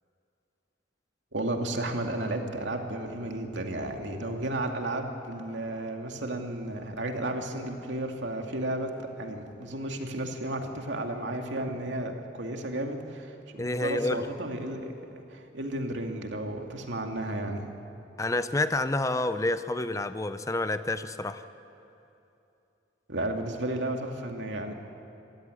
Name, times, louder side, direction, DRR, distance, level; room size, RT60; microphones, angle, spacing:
voice 1, 1.3-14.9 15.3-17.6 23.1-24.7, right 1 dB, 80° right, 3 dB, 2.3 m, -33 dB
voice 2, 13.6-14.2 18.2-21.5, left 2 dB, 15° left, 11 dB, 0.6 m, -29 dB
25.5 x 16.0 x 9.8 m, 2.8 s
head